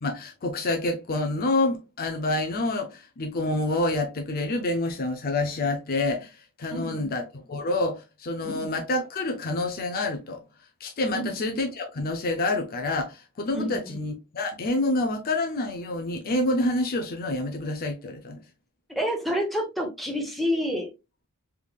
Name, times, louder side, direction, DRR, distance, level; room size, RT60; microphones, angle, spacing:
voice 1, 0.0-10.4 10.8-18.4, left 2 dB, 40° left, 0.5 m, -28 dB
voice 2, 6.7-7.1 8.4-8.7 11.1-11.3 13.5-14.0 18.9-20.9, equal, ahead, 0.9 m, -29 dB
3.5 x 3.2 x 2.3 m
head